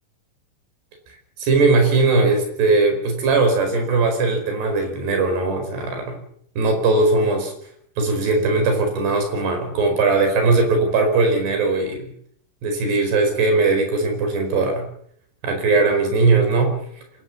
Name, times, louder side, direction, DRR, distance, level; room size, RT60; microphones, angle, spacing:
voice 1, 1.4-6.2 6.6-7.5 8.0-12.1 12.6-14.9 15.4-16.8, right 3 dB, 75° right, 5 dB, 6.9 m, -19 dB
26.0 x 18.0 x 7.4 m, 0.68 s
omnidirectional pair, 4.8 m